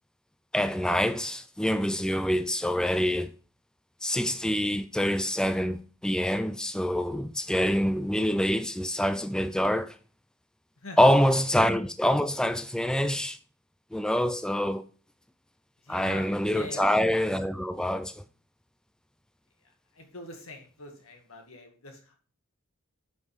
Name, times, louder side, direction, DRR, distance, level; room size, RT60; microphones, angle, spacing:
voice 1, 0.5-3.3 4.0-9.9 11.0-13.4 13.9-14.8 15.9-18.2, equal, 5° left, 0.3 m, -26 dB
voice 2, 15.8-17.1 19.9-22.2, left 1 dB, 80° left, 2.0 m, -44 dB
9.1 x 5.4 x 3.4 m
head